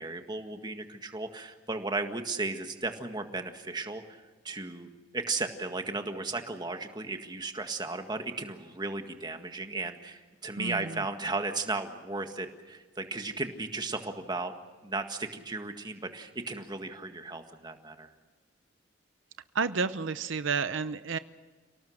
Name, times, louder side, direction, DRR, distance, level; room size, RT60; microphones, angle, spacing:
voice 1, 0.0-14.5 14.8-18.1, right 3 dB, 20° right, 6 dB, 1.8 m, -35 dB
voice 2, 10.6-11.0 19.5-21.2, right 5 dB, 75° right, 12 dB, 0.7 m, -31 dB
29.5 x 18.5 x 6.5 m, 1.3 s
head